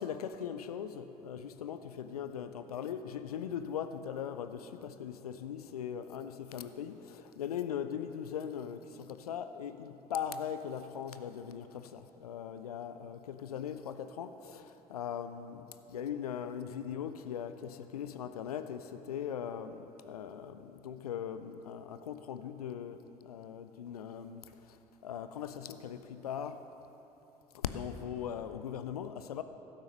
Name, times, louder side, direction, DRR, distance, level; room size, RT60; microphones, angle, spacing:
voice 1, 0.0-24.8 25.0-26.6 27.5-29.4, left 8 dB, 80° left, 10 dB, 0.4 m, -40 dB
12.0 x 8.8 x 5.3 m, 3.0 s
figure-of-eight pair, 45°, 19 cm